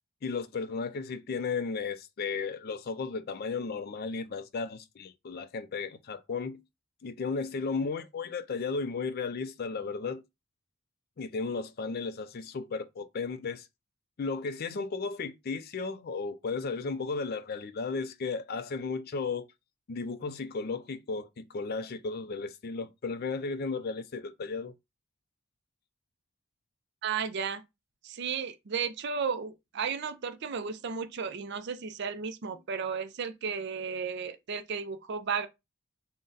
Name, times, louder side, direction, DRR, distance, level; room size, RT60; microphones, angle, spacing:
voice 1, 0.2-6.6 7.0-10.2 11.2-13.7 14.2-19.5 19.9-24.7, left 4 dB, 45° left, 0.4 m, -34 dB
voice 2, 27.0-27.6 28.0-35.5, right 6 dB, 55° right, 0.5 m, -34 dB
3.7 x 2.1 x 3.9 m
head